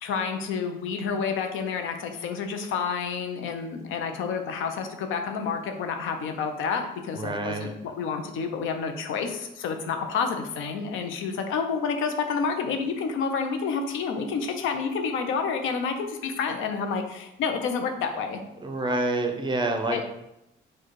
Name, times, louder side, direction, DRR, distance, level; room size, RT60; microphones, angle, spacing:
voice 1, 0.0-7.7 8.0-18.4 19.9-20.1, left 5 dB, 85° left, 5 dB, 0.6 m, -29 dB
voice 2, 7.1-7.7 18.6-20.1, right 2 dB, 25° right, 5 dB, 0.7 m, -27 dB
4.7 x 2.4 x 4.5 m, 0.86 s
cardioid pair, 90°, 20 cm